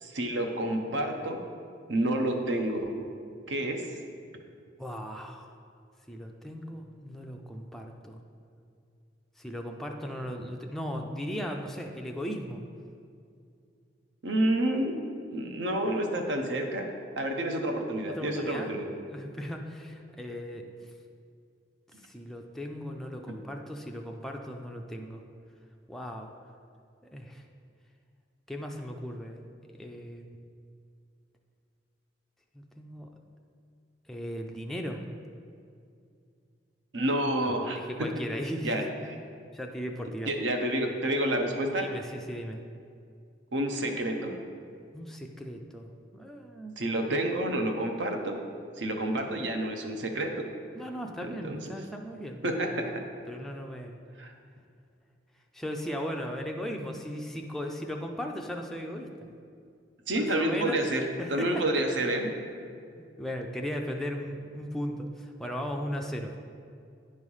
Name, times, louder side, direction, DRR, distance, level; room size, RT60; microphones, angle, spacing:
voice 1, 0.0-1.4 1.9-2.9 3.5-3.8 14.2-15.0 15.3-16.9 17.2-18.9 23.3-23.4 36.9-37.8 38.6-38.8 40.3-41.9 43.5-44.4 46.8-48.4 48.8-50.5 51.4-51.6 52.4-52.9 54.2-54.3 60.1-61.0 61.3-62.3, right 1 dB, 70° right, 4 dB, 0.8 m, -29 dB
voice 2, 4.8-5.5 6.1-8.2 9.4-12.6 18.1-18.7 19.1-20.7 22.0-25.2 25.9-26.3 27.0-27.4 28.5-29.4 29.7-30.4 32.5-33.1 34.1-35.0 37.4-38.9 39.5-40.3 41.8-42.6 44.9-46.7 50.7-52.8 53.3-54.0 55.5-59.3 60.1-60.8 61.2-61.6 63.0-66.3, equal, ahead, 1 dB, 0.4 m, -37 dB
9.5 x 3.2 x 5.4 m, 2.4 s
head